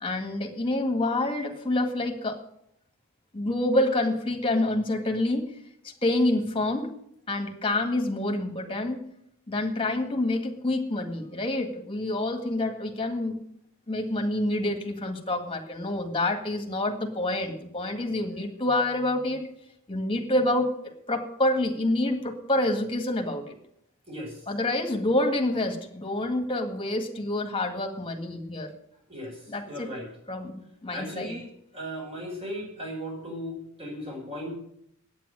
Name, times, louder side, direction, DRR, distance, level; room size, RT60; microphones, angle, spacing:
voice 1, 0.0-2.4 3.3-5.5 6.0-6.9 7.3-9.0 9.5-13.4 13.9-19.5 19.9-23.5 24.5-28.7 29.5-29.9 30.3-31.4, left 1 dB, 25° left, 5 dB, 1.9 m, -27 dB
voice 2, 24.1-24.4 29.1-30.1 30.9-31.5 31.7-34.5, equal, 30° right, -1 dB, 5.9 m, -37 dB
9.3 x 9.1 x 9.7 m, 0.71 s
head